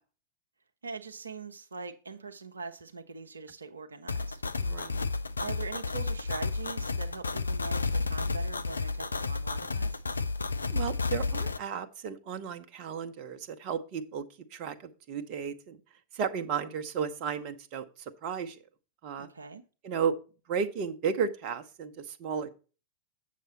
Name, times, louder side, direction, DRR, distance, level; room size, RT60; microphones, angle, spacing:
voice 1, 0.8-4.8 5.4-10.2 19.2-19.6, right 4 dB, 75° right, 0.7 m, -42 dB
sound 1, 4.1-11.6, left 3 dB, 80° left, 0.4 m, -31 dB
voice 2, 4.6-5.1 10.7-15.8 16.1-17.9 18.2-18.6 19.0-19.3 19.8-20.1 20.5-22.5, right 7 dB, 45° right, 0.8 m, -34 dB
8.4 x 6.7 x 4.2 m
figure-of-eight pair, 90°, 0 cm